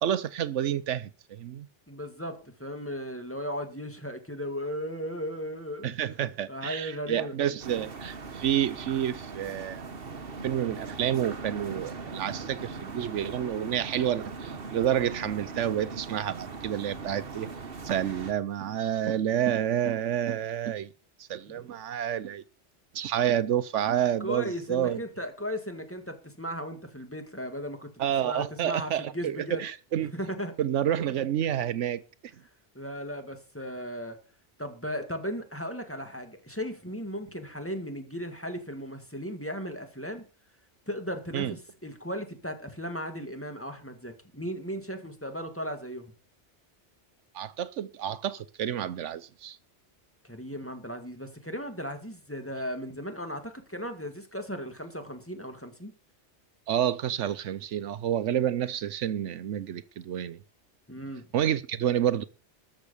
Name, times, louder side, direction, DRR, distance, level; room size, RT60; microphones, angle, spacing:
voice 1, 0.0-1.7 5.8-9.8 10.4-17.5 17.8-20.9 21.3-22.4 22.9-25.0 28.0-30.1 30.6-32.0 41.3-41.5 47.3-49.6 56.7-60.4 61.3-62.2, right 10 dB, 80° right, 1.0 m, -29 dB
voice 2, 1.9-5.9 6.5-7.4 21.5-21.7 24.2-27.9 28.2-29.6 30.1-30.5 32.7-34.2 34.6-40.2 40.9-46.1 50.2-55.9 60.9-61.3, equal, 10° left, 1.9 m, -36 dB
sound 1, 7.6-18.3, right 4 dB, 50° right, 1.4 m, -40 dB
13.5 x 6.5 x 6.8 m
omnidirectional pair, 1.2 m